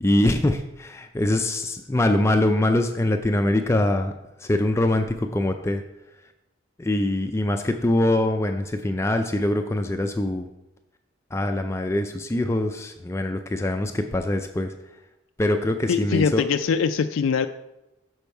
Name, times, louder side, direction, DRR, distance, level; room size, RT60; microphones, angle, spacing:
voice 1, 0.0-4.1 4.4-5.8 6.8-10.5 11.3-14.7 15.4-16.4, left 1 dB, 15° left, 5 dB, 0.4 m, -23 dB
voice 2, 15.9-17.5, left 6 dB, 85° left, 7 dB, 0.4 m, -22 dB
6.8 x 6.2 x 4.6 m, 0.95 s
head